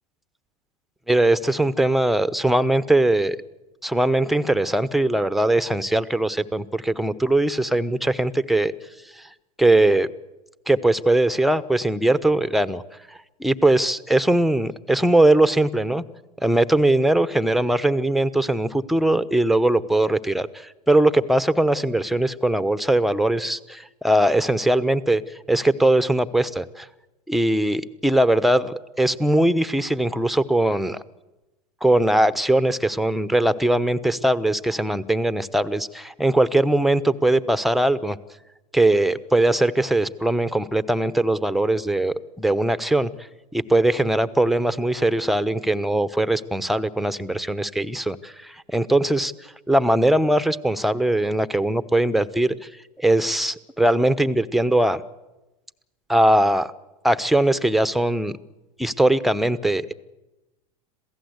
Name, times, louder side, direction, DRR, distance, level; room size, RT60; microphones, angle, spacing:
voice 1, 1.1-3.4 3.8-8.7 9.6-10.1 10.7-12.8 13.4-16.0 16.4-25.2 25.5-26.9 27.3-31.0 31.8-38.2 38.7-43.1 43.5-49.3 49.7-52.5 53.0-55.0 56.1-56.7 57.0-58.3 58.8-59.9, right 1 dB, ahead, 14 dB, 0.9 m, -20 dB
27.0 x 16.5 x 8.1 m, 1.0 s
hypercardioid pair, 90°, 20 cm